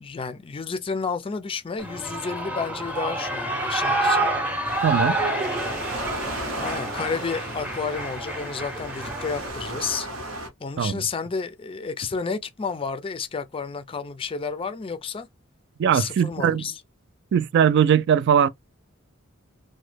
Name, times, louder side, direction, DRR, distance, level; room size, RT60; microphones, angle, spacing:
voice 1, 0.0-4.3 4.8-4.9 6.6-10.1 10.6-15.3 15.9-16.8, left 5 dB, 25° left, 0.4 m, -31 dB
Shout / Cheering, 1.8-9.5, right 2 dB, 5° right, 0.7 m, -28 dB
Waves surf, 4.6-10.5, right 1 dB, 85° right, 0.9 m, -35 dB
voice 2, 4.8-5.2 10.8-11.0 15.8-16.7 17.3-18.5, right 8 dB, 60° right, 0.3 m, -20 dB
2.9 x 2.2 x 3.2 m
head